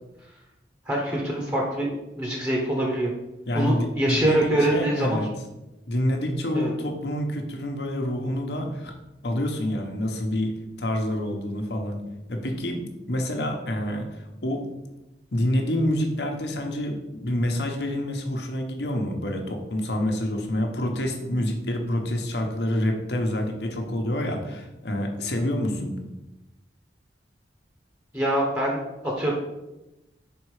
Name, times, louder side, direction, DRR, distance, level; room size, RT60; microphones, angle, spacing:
voice 1, 0.9-1.9 2.2-3.1 3.5-5.2 6.5-6.7 28.1-29.3, right 1 dB, 20° right, -2 dB, 1.0 m, -24 dB
voice 2, 3.4-5.3 5.9-8.9 9.2-10.5 10.8-12.0 12.3-14.6 15.3-26.0, left 1 dB, 70° left, 3 dB, 1.1 m, -27 dB
5.4 x 4.3 x 4.8 m, 0.97 s
head